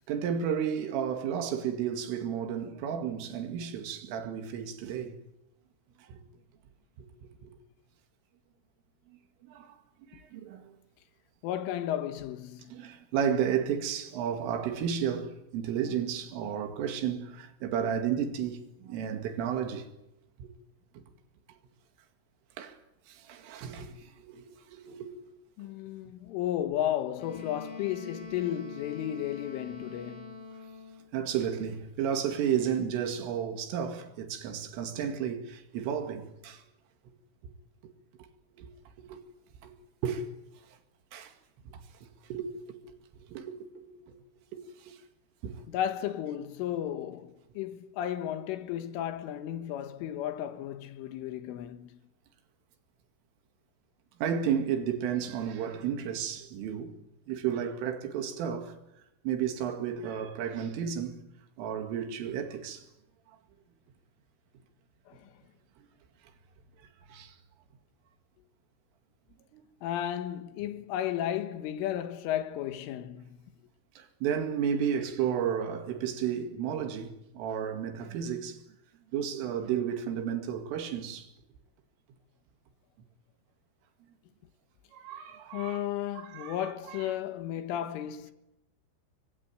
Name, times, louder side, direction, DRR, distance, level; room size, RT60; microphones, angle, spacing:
voice 1, 0.1-5.2 6.0-6.2 7.0-7.5 9.5-9.8 10.1-10.7 12.7-19.9 20.4-20.5 20.9-21.0 22.6-22.8 23.1-25.2 31.1-36.6 38.6-38.7 39.1-39.2 39.6-39.7 40.0-40.3 41.1-41.3 41.7-42.9 43.3-44.2 44.5-45.0 45.4-45.6 54.2-56.9 57.3-58.8 59.2-61.2 61.6-62.9 67.1-67.4 69.5-69.6 74.0-78.6 79.1-81.3 84.9-85.8 86.2-86.6 86.9-87.0, right 8 dB, 80° right, 4.7 m, -33 dB
voice 2, 11.4-12.7 25.6-30.4 45.7-52.0 65.1-65.3 69.8-73.4 85.5-88.3, left 11 dB, 80° left, 3.8 m, -34 dB
Wind instrument woodwind instrument, 27.1-31.1, left 4 dB, 30° left, 4.8 m, -44 dB
25.5 x 22.5 x 9.2 m
omnidirectional pair, 5.7 m